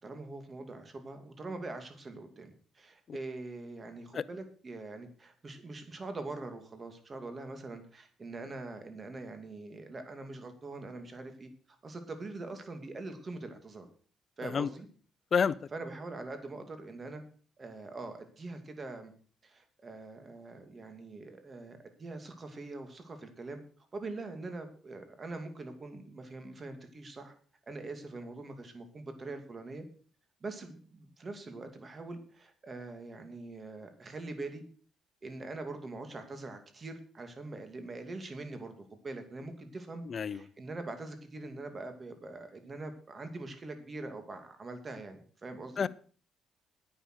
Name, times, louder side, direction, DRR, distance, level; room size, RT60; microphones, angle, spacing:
voice 1, 0.0-11.5 11.8-13.9 14.4-14.9 15.7-17.2 17.6-19.1 19.4-23.6 23.9-27.3 27.7-29.8 30.4-34.6 35.2-45.9, right 2 dB, 35° right, 2.7 m, -43 dB
voice 2, 40.1-40.4 45.8-45.9, left 6 dB, 50° left, 0.6 m, -28 dB
10.0 x 9.5 x 6.4 m
cardioid pair, 90°, 0 cm